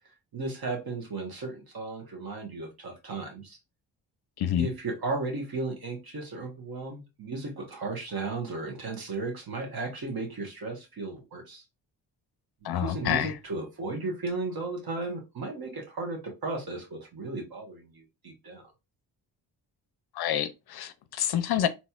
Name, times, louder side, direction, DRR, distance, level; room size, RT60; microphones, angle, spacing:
voice 1, 0.3-3.6 4.6-11.6 12.6-18.7, right 3 dB, 50° right, 1.4 m, -35 dB
voice 2, 4.4-4.7 12.6-13.3 20.1-21.7, left 10 dB, 55° left, 0.5 m, -28 dB
4.1 x 3.0 x 2.3 m
hypercardioid pair, 45°, 48 cm